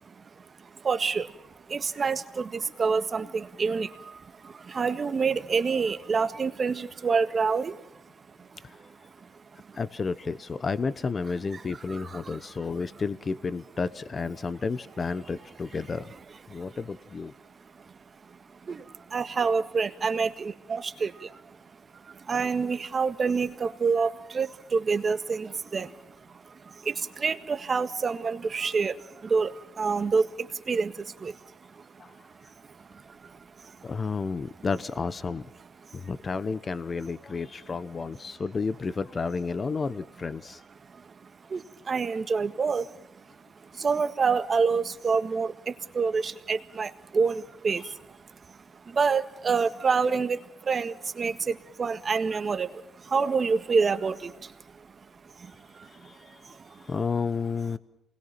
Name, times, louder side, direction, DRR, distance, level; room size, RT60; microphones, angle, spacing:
voice 1, 0.0-8.0 8.3-9.0 9.2-9.3 9.6-9.8 12.0-12.4 16.5-16.7 17.8-17.9 18.2-21.6 21.9-31.4 31.7-33.8 35.8-36.1 40.8-43.3 43.6-56.8, right 5 dB, 40° right, 9 dB, 1.6 m, -29 dB
voice 2, 9.7-16.1 16.5-17.3 32.0-32.1 33.8-35.5 35.9-40.6 47.8-47.9 55.8-57.8, left 4 dB, 35° left, 15 dB, 1.0 m, -32 dB
28.0 x 21.0 x 5.9 m, 0.86 s
cardioid pair, 90°, 0 cm